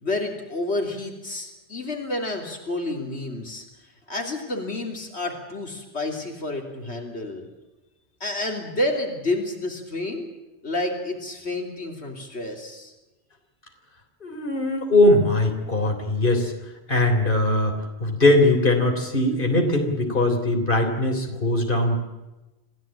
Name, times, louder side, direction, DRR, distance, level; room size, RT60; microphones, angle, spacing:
voice 1, 0.0-3.7 4.1-7.5 8.2-10.3 10.6-12.9, left 2 dB, 90° left, 2 dB, 3.5 m, -29 dB
voice 2, 14.2-16.5 16.9-22.0, left 1 dB, 55° left, 3 dB, 3.8 m, -21 dB
27.0 x 16.5 x 9.0 m, 1.1 s
omnidirectional pair, 1.1 m